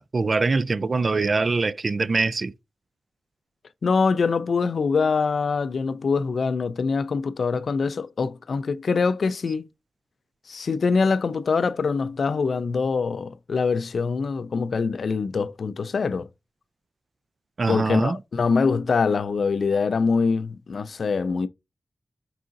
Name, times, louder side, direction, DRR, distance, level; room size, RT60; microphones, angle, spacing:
voice 1, 0.0-2.5 17.6-18.2, right 3 dB, 45° right, 0.3 m, -23 dB
voice 2, 3.8-9.7 10.5-16.3 17.7-21.5, left 4 dB, 70° left, 0.4 m, -24 dB
4.8 x 3.7 x 2.6 m
wide cardioid pair, 135°, 0 cm